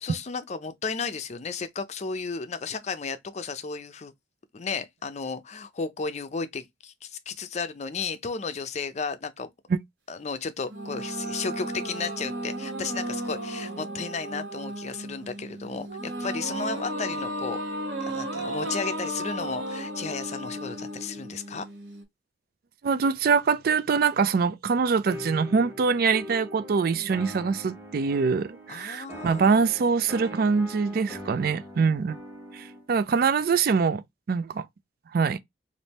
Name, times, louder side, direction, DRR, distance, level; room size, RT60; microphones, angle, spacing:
voice 1, 0.0-4.1 4.5-9.5 10.1-17.6 18.0-21.7 28.7-29.5, left 5 dB, 40° left, 0.5 m, -34 dB
sound 1, 10.6-22.0, right 1 dB, 70° right, 1.6 m, -34 dB
voice 2, 22.8-32.2 32.5-34.0 34.3-34.6 35.1-35.4, right 5 dB, 55° right, 0.4 m, -24 dB
sound 2, 25.1-32.9, equal, 10° right, 1.1 m, -42 dB
3.4 x 2.6 x 4.0 m
head